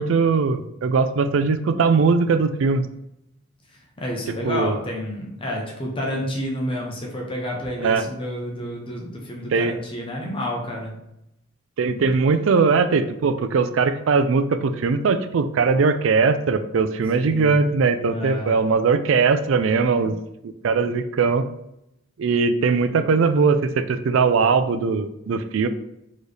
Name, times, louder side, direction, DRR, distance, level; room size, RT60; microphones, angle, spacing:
voice 1, 0.0-2.9 4.4-4.8 7.8-8.1 9.5-9.7 11.8-20.2 20.4-21.4 22.2-25.7, right 4 dB, 70° right, 11 dB, 0.4 m, -20 dB
voice 2, 3.7-11.0 17.1-17.6 18.1-18.6 20.0-20.1, left 1 dB, 25° left, -1 dB, 0.8 m, -30 dB
4.4 x 3.1 x 3.3 m, 0.83 s
head